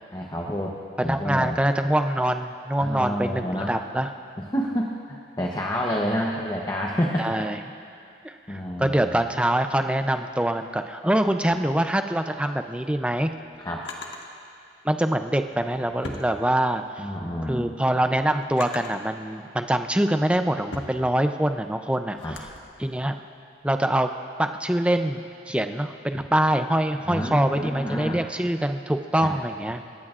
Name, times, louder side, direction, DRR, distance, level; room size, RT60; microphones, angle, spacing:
voice 1, 0.1-0.7 1.0-1.6 2.8-3.8 4.4-7.4 8.5-9.2 11.4-11.5 13.6-13.8 17.0-17.7 22.2-22.4 27.1-28.2 29.1-29.3, equal, 20° left, -2 dB, 0.8 m, -29 dB
voice 2, 1.0-4.1 7.2-7.6 8.2-13.3 14.8-17.1 17.4-22.2 22.8-23.1 23.6-24.1 24.4-29.8, right 1 dB, 5° right, 7 dB, 0.4 m, -24 dB
Drawer open or close, 12.6-14.3 15.3-17.0 17.4-19.1 19.7-22.6, left 2 dB, 70° left, 1.5 m, -42 dB
29.5 x 15.0 x 2.5 m, 2.5 s
head